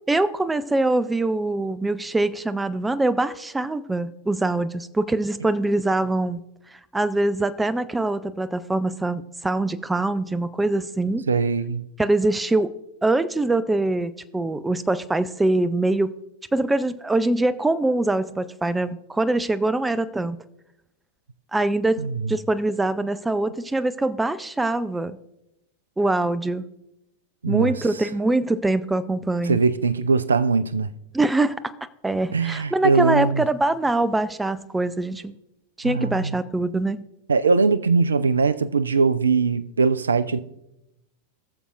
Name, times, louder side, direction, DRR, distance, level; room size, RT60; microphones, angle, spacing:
voice 1, 0.1-6.4 6.9-11.3 12.0-12.7 13.0-16.2 16.5-20.4 21.5-25.2 26.0-26.7 27.5-29.6 31.1-31.7 32.0-35.3 35.8-37.0, right 2 dB, 10° right, 0.5 m, -23 dB
voice 2, 11.3-11.8 22.0-22.3 27.4-27.7 29.4-30.9 32.3-33.4 35.8-36.4 37.3-40.4, right 4 dB, 75° right, 0.5 m, -21 dB
20.0 x 6.9 x 2.5 m
figure-of-eight pair, 90°, 0 cm